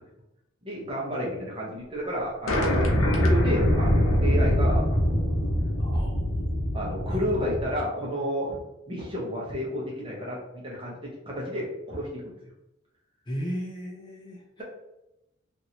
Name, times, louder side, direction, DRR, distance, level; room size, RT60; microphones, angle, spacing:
voice 1, 0.6-5.4 6.7-8.6 8.9-12.3, equal, 25° right, -4 dB, 0.9 m, -31 dB
sound 1, 2.5-7.8, equal, 80° left, 0.6 m, -23 dB
voice 2, 5.8-6.1 7.1-7.5 13.3-14.6, equal, 20° left, -3 dB, 0.4 m, -35 dB
3.1 x 2.6 x 2.8 m, 0.91 s
head